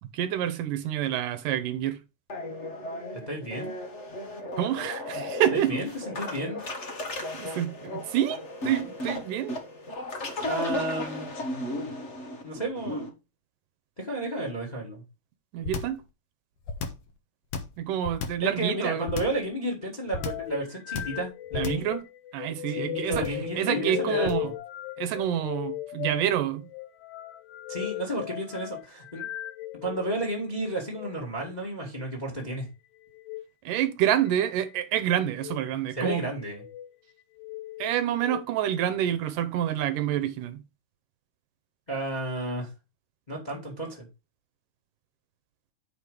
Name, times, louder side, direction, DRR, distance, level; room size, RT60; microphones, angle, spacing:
voice 1, 0.0-2.0 4.6-5.7 7.4-9.6 15.5-16.0 17.8-19.1 21.6-22.0 22.3-23.3 23.6-24.5 25.0-26.7 33.7-36.3 37.8-40.6, right 11 dB, 75° right, 2.4 m, -27 dB
sound 1, 2.3-13.1, left 1 dB, 45° left, 0.9 m, -35 dB
voice 2, 3.3-3.7 5.5-5.9 6.2-6.6 10.4-11.3 12.4-13.1 14.0-15.0 18.4-21.9 22.7-24.5 27.7-29.2 29.8-32.7 35.9-36.6 41.9-42.7 43.3-44.1, right 1 dB, 15° left, 1.5 m, -32 dB
sound 2, 15.6-16.0 16.6-17.1 17.5-18.5 19.1-19.5 20.1-20.5 20.9-21.2 21.5-21.9 23.1-23.5 24.2-24.5, left 5 dB, 60° left, 2.0 m, -33 dB
sound 3, 20.1-30.1 30.8-31.1 33.1-33.4 34.3-34.8 35.3-35.6 36.4-36.9 37.4-38.4, left 14 dB, 85° left, 1.7 m, -36 dB
8.5 x 5.0 x 5.0 m
omnidirectional pair, 3.9 m